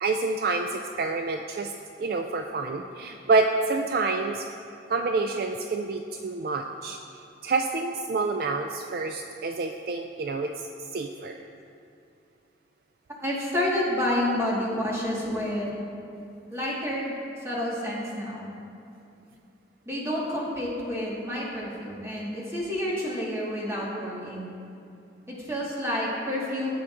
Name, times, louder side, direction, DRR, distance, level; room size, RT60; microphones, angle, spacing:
voice 1, 0.0-1.7 2.0-4.5 4.9-7.0 7.4-10.5 10.8-11.4, right 3 dB, 55° right, 4 dB, 0.3 m, -27 dB
voice 2, 13.2-15.8 16.5-17.1 17.4-18.5 19.9-24.5 25.3-26.8, left 1 dB, 15° right, -5 dB, 1.6 m, -29 dB
13.0 x 8.3 x 2.5 m, 2.6 s
head